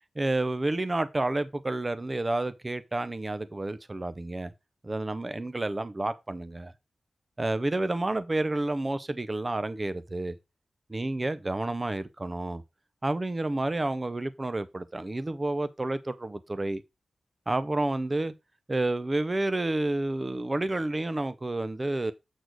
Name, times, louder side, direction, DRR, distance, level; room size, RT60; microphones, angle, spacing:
voice 1, 0.2-4.5 4.8-6.7 7.4-10.4 10.9-12.6 13.0-16.8 17.5-18.3 18.7-22.1, right 2 dB, 20° right, 0.5 m, -30 dB
8.1 x 4.2 x 4.5 m
wide cardioid pair, 145°, 0 cm